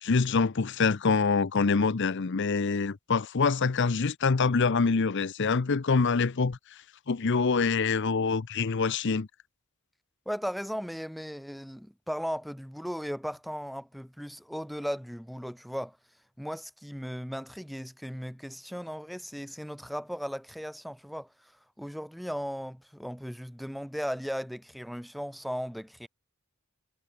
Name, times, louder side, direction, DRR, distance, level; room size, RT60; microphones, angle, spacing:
voice 1, 0.0-9.3, left 4 dB, 55° left, 0.6 m, -25 dB
voice 2, 10.2-16.0 16.4-21.5 21.8-26.1, equal, ahead, 1.6 m, -37 dB
head